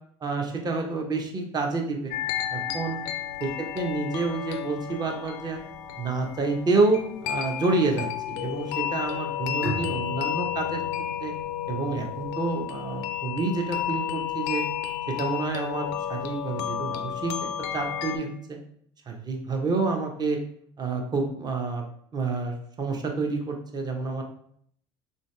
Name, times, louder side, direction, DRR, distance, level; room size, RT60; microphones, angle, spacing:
voice 1, 0.2-2.1 2.5-3.0 3.4-5.6 6.0-10.8 11.2-11.3 11.7-14.6 15.1-17.5 17.7-18.6 19.1-20.4 20.8-21.8 22.1-24.2, right 3 dB, 30° right, 2 dB, 0.7 m, -28 dB
sound 1, 2.1-18.2, left 10 dB, 70° left, 0.4 m, -32 dB
Bowed string instrument, 9.6-13.1, equal, 65° right, 0.8 m, -40 dB
3.2 x 2.6 x 2.2 m, 0.64 s
hypercardioid pair, 75°, 14 cm